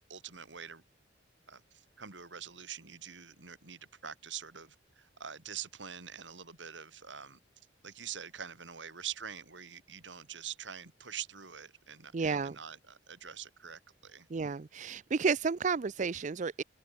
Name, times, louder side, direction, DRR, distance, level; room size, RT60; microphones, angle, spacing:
voice 1, 0.1-0.8 1.5-7.4 7.8-14.3, right 8 dB, 80° right, 2.9 m, -45 dB
voice 2, 12.1-12.5 14.3-16.6, right 5 dB, 40° right, 0.4 m, -31 dB
open air
head